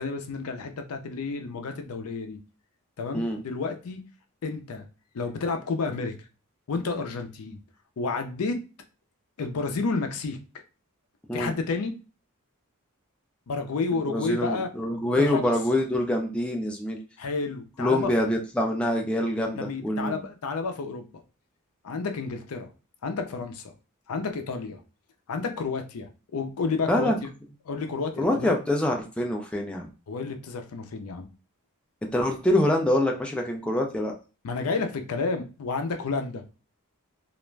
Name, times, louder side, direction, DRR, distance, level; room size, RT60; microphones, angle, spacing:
voice 1, 0.0-2.4 3.0-4.0 4.4-4.9 5.1-6.2 6.7-7.6 8.0-8.6 9.4-10.4 11.3-11.9 13.5-14.7 15.0-15.5 17.2-18.1 19.5-21.2 21.8-22.7 23.0-23.7 24.1-24.8 25.3-27.3 27.6-28.6 30.1-31.3 34.4-36.4, left 4 dB, 70° left, 6 dB, 0.5 m, -30 dB
voice 2, 14.1-17.0 17.8-20.2 26.9-27.1 28.2-29.9 32.0-34.1, left 1 dB, 5° left, 0 dB, 0.3 m, -25 dB
2.4 x 2.1 x 3.1 m, 0.33 s
head